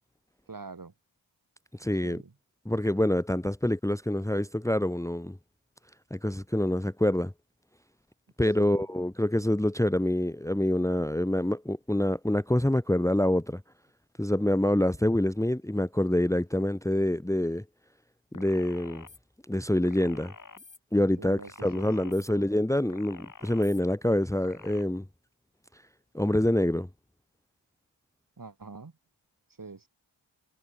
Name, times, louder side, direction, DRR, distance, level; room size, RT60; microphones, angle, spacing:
voice 1, 0.5-0.9 2.0-2.4 8.6-8.8 21.2-22.6 28.4-28.9 29.6-29.9, right 4 dB, 45° right, 4.5 m, -45 dB
voice 2, 1.8-2.2 2.6-5.4 6.1-7.3 8.4-13.6 14.2-17.6 18.3-19.1 19.5-20.3 20.9-25.0 26.1-26.9, left 1 dB, 5° left, 1.5 m, -26 dB
sound 1, 18.3-19.2 19.8-20.8 21.4-22.3 22.9-23.8 24.4-24.8, left 4 dB, 40° left, 3.0 m, -48 dB
cardioid pair, 50°, 48 cm